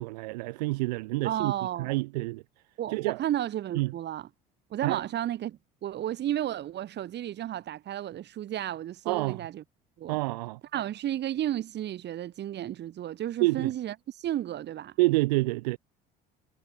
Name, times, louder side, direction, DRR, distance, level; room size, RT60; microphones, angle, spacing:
voice 1, 0.0-1.5 1.8-2.4 2.9-3.2 3.7-3.9 4.8-5.0 9.1-9.4 10.1-10.6 13.4-13.7 15.0-15.8, right 22 dB, 85° right, 1.2 m, -27 dB
voice 2, 1.2-1.9 2.8-4.3 4.7-9.6 10.0-10.2 10.7-14.9, right 12 dB, 55° right, 5.8 m, -33 dB
hypercardioid pair, 70°, 21 cm